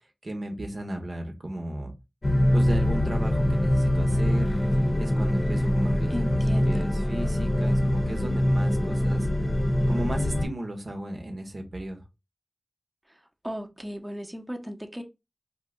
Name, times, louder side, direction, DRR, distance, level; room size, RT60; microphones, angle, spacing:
voice 1, 0.2-1.9 2.5-4.5 5.0-9.3 9.9-12.0, right 1 dB, 75° right, 0.8 m, -35 dB
sound 1, 2.2-10.5, left 1 dB, 50° left, 0.6 m, -24 dB
voice 2, 6.1-6.9 13.4-15.0, equal, 15° right, 0.6 m, -35 dB
2.7 x 2.2 x 3.6 m
wide cardioid pair, 45°, 0 cm